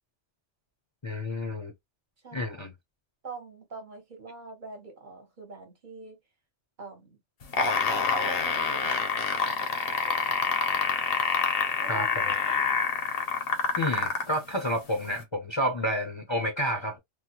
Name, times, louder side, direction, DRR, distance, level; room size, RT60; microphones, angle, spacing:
voice 1, 1.0-1.7 2.3-2.7 11.9-12.1 13.8-17.0, equal, 30° left, 0.6 m, -30 dB
voice 2, 2.2-2.6 3.2-6.2 6.8-7.2 7.7-10.2 10.5-10.7 11.8-12.5, right 3 dB, 45° right, 1.1 m, -44 dB
sound 1, 7.4-14.4 15.2-15.3, left 5 dB, 60° left, 1.0 m, -26 dB
3.5 x 2.1 x 2.8 m
omnidirectional pair, 1.2 m